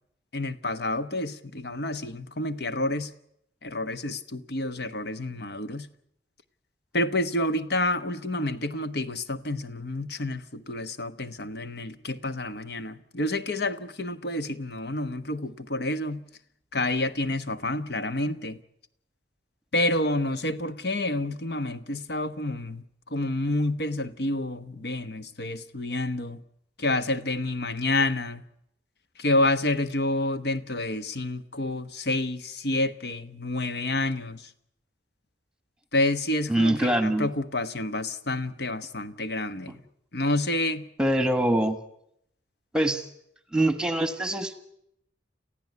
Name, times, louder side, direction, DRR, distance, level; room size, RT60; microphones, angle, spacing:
voice 1, 0.3-3.1 3.6-5.9 6.9-16.3 16.7-18.6 19.7-22.8 23.1-26.4 26.8-28.4 29.2-34.5 35.9-39.8 40.1-40.9, left 2 dB, 60° left, 1.1 m, -29 dB
voice 2, 36.5-37.3 41.0-41.8 42.7-43.0 43.5-44.6, right 1 dB, 5° right, 1.5 m, -24 dB
29.0 x 15.0 x 9.5 m
head